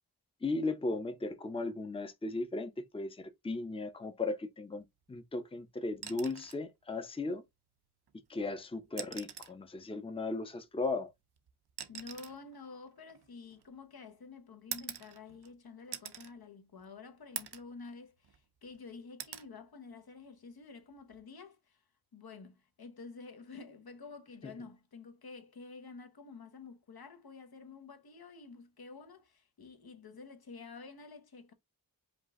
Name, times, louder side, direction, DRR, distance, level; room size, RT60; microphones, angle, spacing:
voice 1, 0.4-7.4 8.3-11.1 24.4-24.5, left 3 dB, 15° left, 0.6 m, -36 dB
sound 1, 5.9-6.7 8.1-8.2 8.9-9.6 10.8-13.9 14.7-15.5 15.9-16.3 16.8-16.9 17.4-17.7 18.2-18.8 19.2-19.5 21.0-21.2, right 8 dB, 90° right, 0.7 m, -45 dB
voice 2, 11.9-21.8 22.1-31.5, left 4 dB, 70° left, 1.0 m, -50 dB
5.3 x 2.5 x 3.6 m
wide cardioid pair, 95°, 38 cm